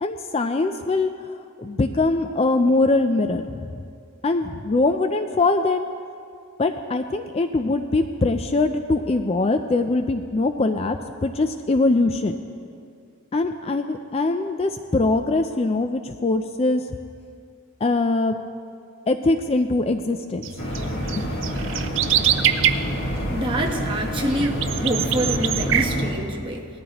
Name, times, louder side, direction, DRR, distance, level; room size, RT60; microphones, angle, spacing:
voice 1, 0.0-1.3 1.6-3.7 4.2-5.9 6.6-12.4 13.3-16.9 17.8-18.4 19.1-20.4 21.2-21.3, left 2 dB, 30° left, 7 dB, 0.4 m, -22 dB
sound 1, 20.4-22.7 23.1-25.8, right 11 dB, 60° right, 0.5 m, -24 dB
sound 2, 20.6-26.1, equal, 55° left, 1.7 m, -27 dB
voice 2, 23.3-26.7, right 1 dB, 25° right, 1 dB, 1.0 m, -26 dB
18.5 x 13.0 x 2.9 m, 2.3 s
head